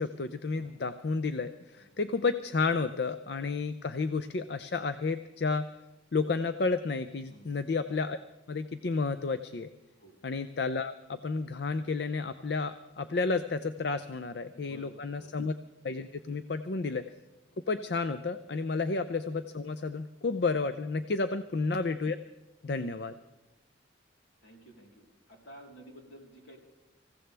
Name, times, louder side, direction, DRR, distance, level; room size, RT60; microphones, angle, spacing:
voice 1, 0.0-5.6 6.1-8.2 8.5-9.7 10.2-15.5 15.8-17.0 17.7-22.2 22.6-23.1, left 4 dB, 55° left, 11 dB, 0.5 m, -31 dB
voice 2, 14.5-15.5 17.5-17.6 18.7-18.8 21.2-21.3 22.7-23.0 24.4-26.6, right 1 dB, 80° left, -1 dB, 3.7 m, -53 dB
26.0 x 15.5 x 3.4 m, 0.97 s
head